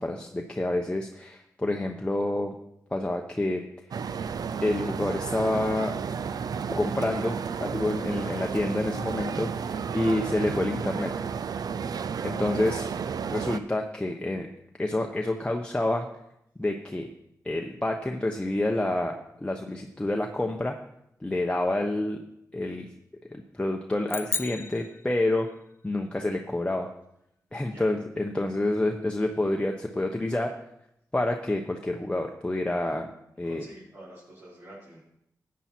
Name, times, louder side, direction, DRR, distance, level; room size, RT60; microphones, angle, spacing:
voice 1, 0.0-2.5 2.9-3.6 4.6-5.9 6.7-11.1 12.2-12.9 13.3-14.5 14.8-16.1 16.6-17.1 17.4-20.7 21.2-22.2 22.5-22.9 23.3-25.5 25.8-26.9 27.5-30.5 31.1-33.1 33.4-33.7, left 1 dB, 15° left, 2 dB, 1.0 m, -28 dB
sound 1, 3.9-13.6, right 6 dB, 75° right, 0.6 m, -32 dB
sound 2, 24.1-25.7, left 4 dB, 35° left, 0.4 m, -35 dB
voice 2, 33.5-35.0, right 1 dB, 45° right, -8 dB, 5.0 m, -48 dB
13.5 x 8.4 x 4.5 m, 0.79 s
cardioid pair, 70°, 7 cm